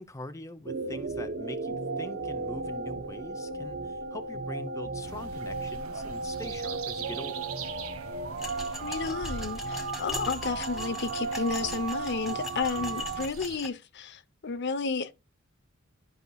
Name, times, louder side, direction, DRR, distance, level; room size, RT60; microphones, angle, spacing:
voice 1, 0.0-7.5, left 2 dB, 15° left, 0.6 m, -43 dB
sound 1, 0.7-13.3, right 3 dB, 55° right, 0.9 m, -35 dB
sound 2, 5.0-13.6, right 4 dB, 80° right, 1.1 m, -43 dB
sound 3, 8.4-13.7, left 1 dB, ahead, 1.4 m, -41 dB
voice 2, 8.7-15.1, left 4 dB, 55° left, 0.7 m, -32 dB
12.5 x 5.4 x 2.3 m
head